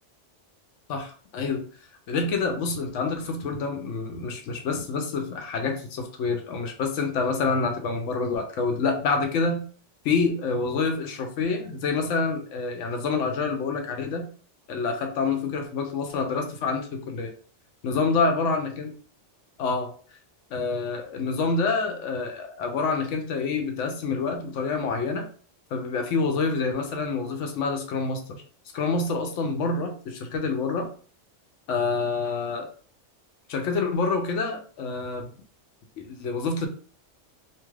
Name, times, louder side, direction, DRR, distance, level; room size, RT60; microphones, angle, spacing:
voice 1, 0.9-1.7 2.1-9.7 10.0-14.2 14.7-17.3 17.8-18.9 19.6-19.9 20.5-25.3 25.7-28.4 28.7-30.9 31.7-32.7 33.5-35.3 36.1-36.7, left 4 dB, 85° left, 4 dB, 1.0 m, -27 dB
2.8 x 2.3 x 3.2 m, 0.43 s
omnidirectional pair, 1.2 m